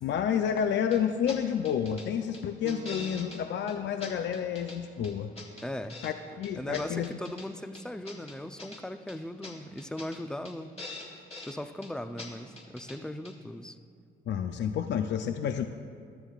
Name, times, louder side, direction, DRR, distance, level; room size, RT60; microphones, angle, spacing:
voice 1, 0.0-5.3 6.0-7.1 14.3-15.7, left 8 dB, 65° left, 8 dB, 0.5 m, -30 dB
sound 1, 0.9-1.0 1.3-1.4 1.6-2.1 2.3-3.4 3.7-3.8 4.0-4.8 5.0-6.1 6.4-7.5 7.7-8.8 9.1-9.2 9.4-9.5 9.8-10.2 10.4-10.5 10.8-11.6 11.8-11.9 12.2-12.3 12.6-13.0 13.2-13.3, left 3 dB, 30° left, 2.8 m, -43 dB
Piano, 2.6-7.8 8.3-8.4 9.0-9.5, right 4 dB, 75° right, 1.0 m, -51 dB
voice 2, 5.6-6.0 6.6-10.8 11.5-13.8, left 1 dB, 5° left, 10 dB, 0.5 m, -38 dB
20.0 x 13.0 x 2.4 m, 2.3 s
cardioid pair, 90°, 20 cm